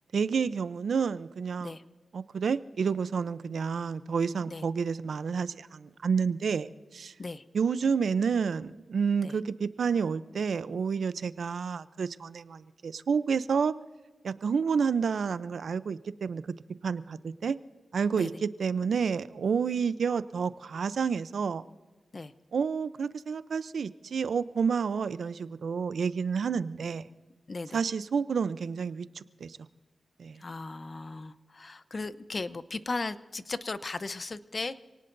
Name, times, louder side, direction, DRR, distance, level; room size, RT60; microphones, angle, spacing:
voice 1, 0.1-1.7 2.1-7.1 7.5-13.7 14.2-16.4 16.8-17.6 17.9-21.6 22.5-27.1 27.7-29.6 30.2-30.4, right 6 dB, 80° right, 14 dB, 0.6 m, -29 dB
voice 2, 27.5-27.8 30.4-34.8, left 3 dB, 50° left, 13 dB, 0.8 m, -36 dB
28.0 x 18.5 x 2.7 m, 1.2 s
cardioid pair, 65°, 0 cm